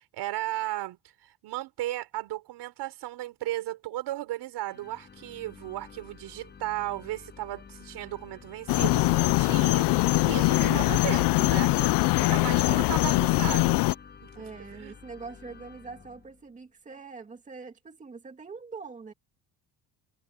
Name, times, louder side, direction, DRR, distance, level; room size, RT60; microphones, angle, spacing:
voice 1, 0.0-11.7 12.2-13.8 14.2-14.3 14.7-15.0, right 16 dB, 70° right, 3.9 m, -35 dB
sound 1, 4.6-16.6, left 6 dB, 25° left, 7.9 m, -50 dB
sound 2, 8.7-13.9, left 20 dB, 75° left, 0.6 m, -23 dB
voice 2, 11.7-12.7 14.3-19.1, right 4 dB, 20° right, 2.5 m, -44 dB
cardioid pair, 180°, 42 cm